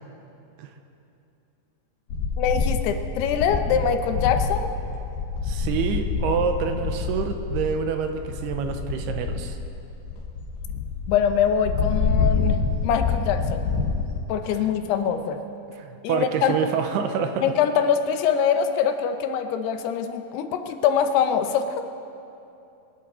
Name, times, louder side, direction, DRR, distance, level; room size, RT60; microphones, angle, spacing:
sound 1, 2.1-14.2, left 5 dB, 65° left, 3.0 m, -27 dB
voice 1, 2.4-4.7 11.1-13.6 14.3-15.4 16.0-16.6 17.4-21.8, left 7 dB, 85° left, 7 dB, 2.9 m, -23 dB
voice 2, 5.4-9.6 14.5-14.7 15.8-17.4, right 7 dB, 85° right, 6 dB, 2.9 m, -27 dB
23.0 x 11.5 x 4.4 m, 2.8 s
omnidirectional pair, 4.6 m